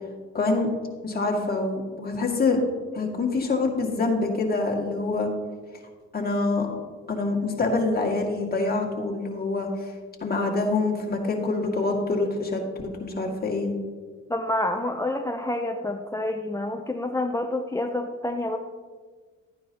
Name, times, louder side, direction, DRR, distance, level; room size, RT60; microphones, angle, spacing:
voice 1, 0.3-0.7 1.0-2.6 2.9-5.3 6.1-6.7 7.1-9.7 10.2-12.6 13.0-13.7, left 3 dB, 30° left, 0 dB, 2.1 m, -25 dB
voice 2, 14.3-18.6, left 1 dB, 10° left, 3 dB, 0.6 m, -28 dB
12.5 x 9.4 x 2.9 m, 1.5 s
cardioid pair, 90°, 30 cm